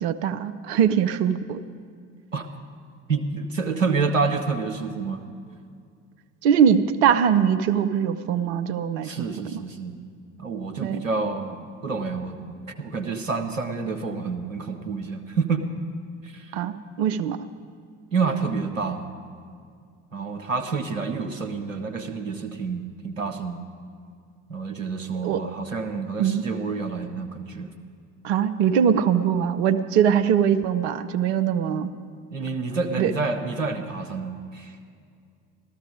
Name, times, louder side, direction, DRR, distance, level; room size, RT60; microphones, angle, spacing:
voice 1, 0.0-1.6 6.4-9.6 10.8-11.0 16.5-17.4 25.2-25.4 26.2-26.4 28.2-31.9 33.0-33.1, right 8 dB, 60° right, 10 dB, 0.7 m, -22 dB
voice 2, 3.1-5.2 9.0-10.0 10.4-15.6 16.2-16.5 18.1-19.1 20.1-23.6 24.5-27.7 32.3-34.8, right 4 dB, 85° right, 6 dB, 0.9 m, -28 dB
13.5 x 13.5 x 5.0 m, 2.3 s
figure-of-eight pair, 65°, 38 cm